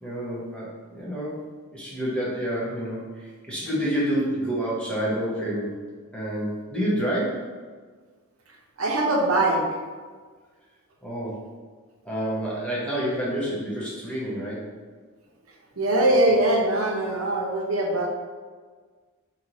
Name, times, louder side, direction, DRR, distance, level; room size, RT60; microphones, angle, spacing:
voice 1, 0.0-1.4 1.7-5.8 6.1-7.5 11.0-11.4 12.0-14.7, equal, 5° left, -7 dB, 1.0 m, -28 dB
voice 2, 8.8-9.6 15.8-18.1, right 1 dB, 85° right, -1 dB, 0.8 m, -22 dB
3.3 x 3.0 x 3.9 m, 1.5 s
head